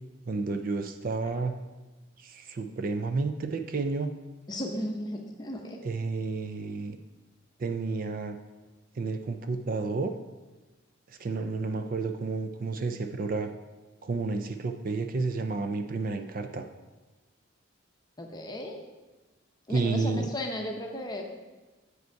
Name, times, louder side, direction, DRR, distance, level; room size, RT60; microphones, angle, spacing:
voice 1, 0.3-1.5 2.2-4.1 5.8-7.0 7.6-8.4 9.0-10.1 11.1-13.5 14.0-16.6 19.7-20.3, right 3 dB, 40° right, 7 dB, 0.4 m, -31 dB
voice 2, 4.5-5.8 18.2-18.8 19.7-21.2, left 1 dB, 20° left, 2 dB, 0.7 m, -35 dB
8.0 x 5.2 x 4.6 m, 1.2 s
head